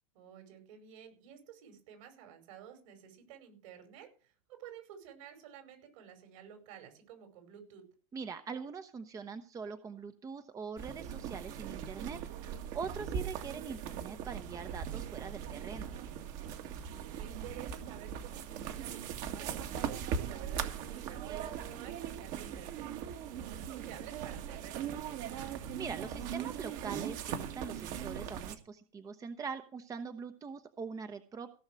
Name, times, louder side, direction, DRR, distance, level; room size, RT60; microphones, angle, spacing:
voice 1, 0.1-7.9 17.1-23.0 23.4-25.5, right 9 dB, 65° right, 6 dB, 5.3 m, -52 dB
voice 2, 8.1-15.9 25.8-31.5, right 5 dB, 20° right, 9 dB, 0.9 m, -43 dB
sound 1, 10.8-28.6, right 8 dB, 50° right, 1.8 m, -40 dB
16.5 x 6.4 x 6.2 m, 0.38 s
supercardioid pair, 125°, 18 cm